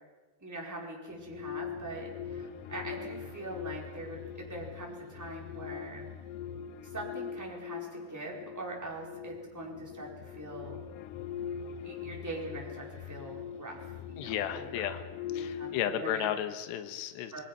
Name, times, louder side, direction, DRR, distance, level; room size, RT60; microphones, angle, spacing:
voice 1, 0.4-6.1 6.8-10.8 11.8-14.8 15.6-16.3 17.3-17.4, right 2 dB, 5° right, -2 dB, 3.9 m, -42 dB
sound 1, 1.1-15.8, left 8 dB, 90° left, 1.9 m, -42 dB
voice 2, 14.2-15.0 15.3-17.4, left 10 dB, 70° left, 8 dB, 3.3 m, -33 dB
28.0 x 21.0 x 6.1 m, 1.3 s
omnidirectional pair, 5.5 m